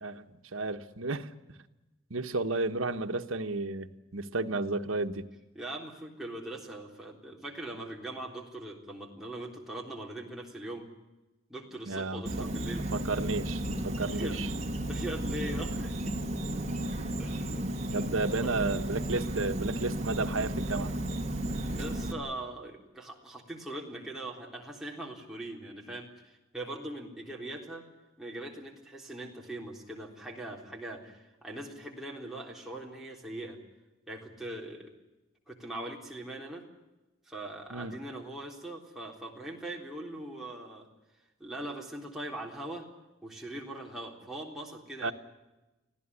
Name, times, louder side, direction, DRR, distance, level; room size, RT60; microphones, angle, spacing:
voice 1, 0.0-1.6 2.1-5.3 11.9-14.5 17.9-20.9 37.7-38.0 45.0-45.1, right 3 dB, 85° right, 7 dB, 1.4 m, -33 dB
voice 2, 5.5-10.9 11.5-12.8 14.1-14.4 14.9-16.1 17.2-17.6 18.4-18.7 21.7-27.9 28.2-33.6 34.1-34.9 35.5-36.7 37.3-40.9 41.4-42.9 43.2-45.1, right 1 dB, ahead, -2 dB, 3.7 m, -41 dB
Insect, 12.3-22.1, right 1 dB, 35° right, 2.1 m, -33 dB
25.0 x 16.5 x 9.9 m, 1.0 s
head